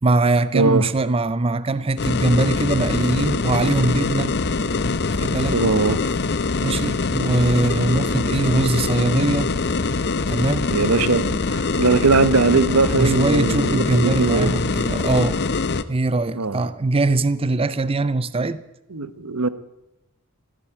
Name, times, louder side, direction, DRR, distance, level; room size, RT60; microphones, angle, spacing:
voice 1, 0.0-4.4 5.2-5.6 6.6-9.5 10.3-10.7 12.9-15.4 15.9-18.6, right 2 dB, 25° right, 0.5 m, -21 dB
voice 2, 0.5-0.9 5.3-6.0 10.7-14.5 16.3-16.6 18.9-19.5, right 3 dB, 75° right, 1.0 m, -20 dB
sound 1, 2.0-15.8, left 3 dB, 50° left, 0.7 m, -23 dB
14.5 x 11.5 x 8.5 m
head